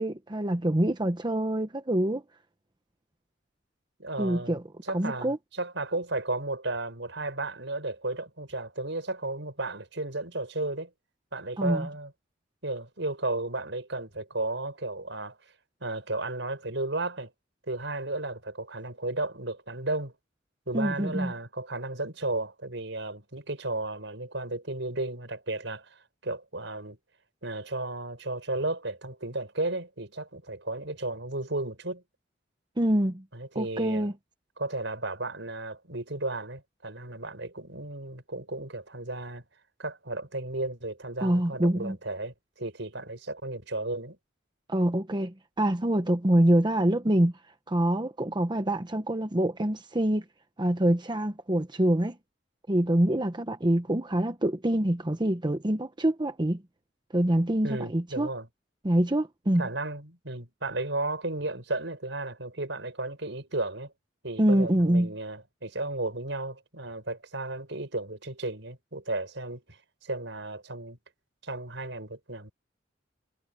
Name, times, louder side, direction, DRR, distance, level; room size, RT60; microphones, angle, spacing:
voice 1, 0.0-2.2 4.2-4.6 4.9-5.4 11.6-11.9 20.7-21.3 32.8-33.2 33.5-34.1 41.2-42.0 44.7-47.3 47.7-50.2 50.6-52.2 52.7-56.6 57.1-58.3 58.8-59.7 64.4-65.1, right 1 dB, 25° right, 1.0 m, -25 dB
voice 2, 4.0-10.9 11.3-12.1 12.6-15.4 15.8-17.3 17.7-20.2 20.7-27.0 27.4-32.0 33.3-34.1 34.6-39.4 39.8-44.2 57.6-58.5 59.6-63.9 64.2-69.6 70.0-71.0 71.4-72.5, right 2 dB, 70° right, 7.6 m, -34 dB
head